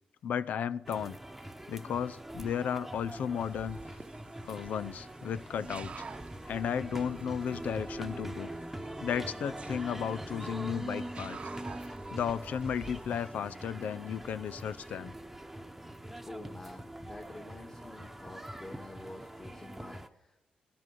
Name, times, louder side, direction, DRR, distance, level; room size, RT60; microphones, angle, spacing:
voice 1, 0.2-1.2 1.7-3.8 4.4-6.0 6.5-8.5 9.0-11.4 12.1-15.1, left 8 dB, 75° left, 16 dB, 0.6 m, -34 dB
sound 1, 0.9-20.1, right 1 dB, 5° right, 1.1 m, -43 dB
sound 2, 3.4-13.2, right 6 dB, 50° right, 0.9 m, -52 dB
voice 2, 16.2-20.4, left 2 dB, 25° left, 1 dB, 1.9 m, -48 dB
16.0 x 11.0 x 6.8 m, 0.87 s
cardioid pair, 110°, 3 cm